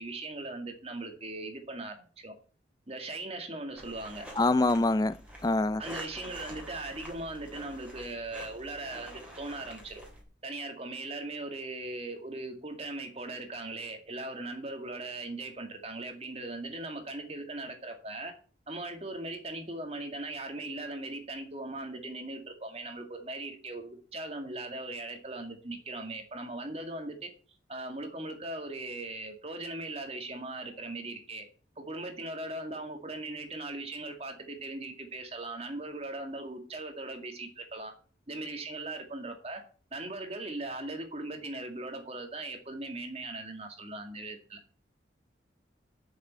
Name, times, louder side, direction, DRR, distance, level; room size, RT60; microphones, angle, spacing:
voice 1, 0.0-2.3 2.9-4.3 5.8-10.0 10.4-18.3 18.7-27.3 27.7-31.5 31.8-37.9 38.3-39.6 39.9-44.6, right 2 dB, 35° right, 2.2 m, -39 dB
sound 1, 3.8-10.2, right 1 dB, 5° right, 3.1 m, -47 dB
voice 2, 4.4-5.2 5.4-5.8, left 2 dB, 20° left, 0.4 m, -25 dB
7.8 x 6.8 x 8.2 m
head